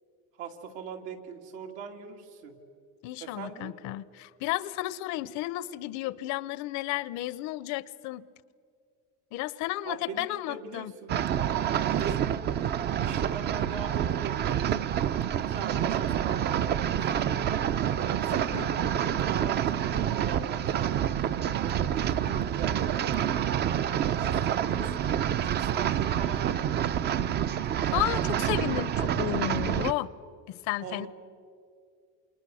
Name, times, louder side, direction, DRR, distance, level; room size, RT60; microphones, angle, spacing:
voice 1, 0.4-2.6 3.2-3.7 9.8-11.1 11.8-12.4 13.0-14.7 15.4-17.7 18.2-21.1 21.6-23.5 24.1-24.9 25.4-27.0 27.7-28.0 28.3-28.7 29.0-29.9 30.8-31.1, right 6 dB, 85° right, 3 dB, 2.9 m, -41 dB
voice 2, 3.0-8.2 9.3-10.9 18.3-18.7 27.9-30.1 30.5-31.1, left 17 dB, 65° left, 19 dB, 0.7 m, -33 dB
sound 1, 11.1-29.9, right 10 dB, 35° right, 0.5 m, -28 dB
29.0 x 26.5 x 6.3 m, 2.3 s
cardioid pair, 150°, 31 cm